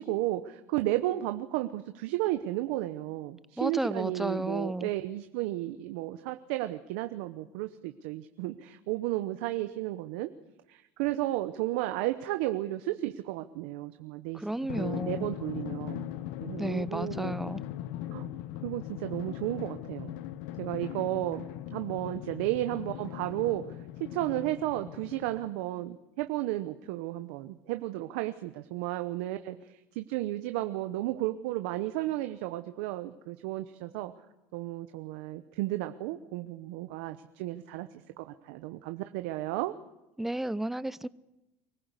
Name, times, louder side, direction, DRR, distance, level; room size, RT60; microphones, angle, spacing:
voice 1, 0.0-10.3 10.7-14.5 14.7-16.1 16.4-17.5 18.1-18.3 18.6-20.1 20.6-21.5 21.7-23.6 24.0-34.1 34.5-37.9 38.2-39.7, right 16 dB, 80° right, 9 dB, 0.9 m, -33 dB
voice 2, 3.6-4.9 14.3-15.3 16.6-17.6 40.2-41.1, right 1 dB, 5° right, 16 dB, 0.7 m, -32 dB
Drum, 14.7-25.7, left 13 dB, 75° left, 0.9 m, -39 dB
24.5 x 16.0 x 8.2 m, 0.98 s
supercardioid pair, 105°, 6 cm